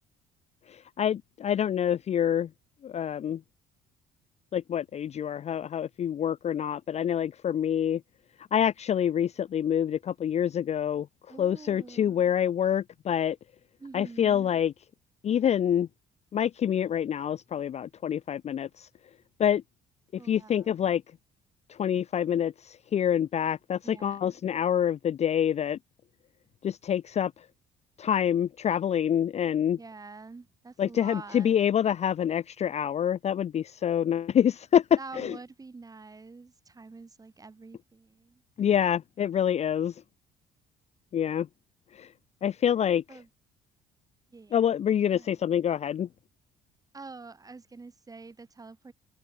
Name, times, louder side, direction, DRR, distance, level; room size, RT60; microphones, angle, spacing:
voice 1, 0.7-2.5 2.8-3.4 4.5-8.0 8.5-11.1 11.4-13.4 13.9-14.7 15.2-15.9 16.3-18.9 19.4-19.6 20.3-21.0 21.7-25.8 26.6-27.3 28.0-29.8 30.8-34.8 35.2-35.4 38.6-39.9 41.1-41.5 41.9-42.1 42.4-43.0 44.5-46.1, left 9 dB, 40° left, 0.6 m, -26 dB
voice 2, 11.3-12.3 13.8-14.5 20.2-20.8 23.8-24.4 29.8-31.5 35.0-38.4 43.1-43.3 44.3-44.6 45.1-45.4 46.9-48.9, right 4 dB, 20° right, 4.2 m, -46 dB
cardioid pair, 110°, 17 cm